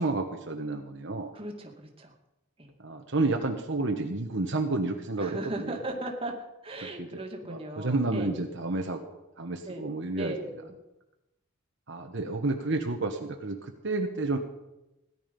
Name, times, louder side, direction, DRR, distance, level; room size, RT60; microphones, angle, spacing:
voice 1, 0.0-1.3 2.8-5.8 7.0-7.2 7.5-9.0 9.4-10.3 11.9-14.4, right 2 dB, 60° right, 4 dB, 1.3 m, -30 dB
voice 2, 1.3-2.1 2.6-2.7 5.2-6.3 6.6-8.4 9.7-9.9 10.2-10.8, right 1 dB, 25° right, 2 dB, 2.2 m, -37 dB
17.0 x 11.0 x 5.4 m, 0.94 s
head